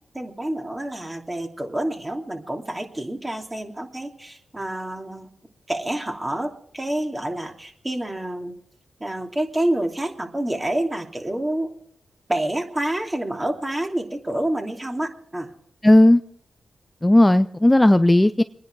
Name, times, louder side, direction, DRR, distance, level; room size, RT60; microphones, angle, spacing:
voice 1, 0.1-5.3 5.7-8.5 9.0-11.7 12.3-15.5, right 1 dB, 20° right, 2 dB, 2.9 m, -28 dB
voice 2, 15.8-16.2 17.0-18.4, left 1 dB, 15° left, 11 dB, 0.6 m, -14 dB
24.5 x 10.0 x 4.8 m, 0.66 s
supercardioid pair, 40°, 0 cm